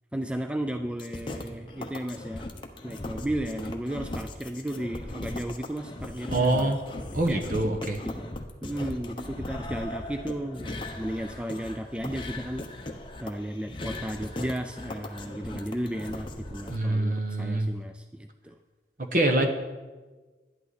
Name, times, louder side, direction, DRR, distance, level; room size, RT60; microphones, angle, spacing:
voice 1, 0.1-2.5 2.8-6.7 7.1-7.4 8.0-8.3 8.6-12.7 13.2-18.6, right 1 dB, 5° right, 6 dB, 0.3 m, -34 dB
sound 1, 1.0-16.8, left 1 dB, 30° left, 0.9 m, -38 dB
voice 2, 6.3-6.8 7.1-8.0 16.7-17.7 19.0-19.5, right 2 dB, 50° right, 5 dB, 1.2 m, -25 dB
11.5 x 11.0 x 4.1 m, 1.3 s
head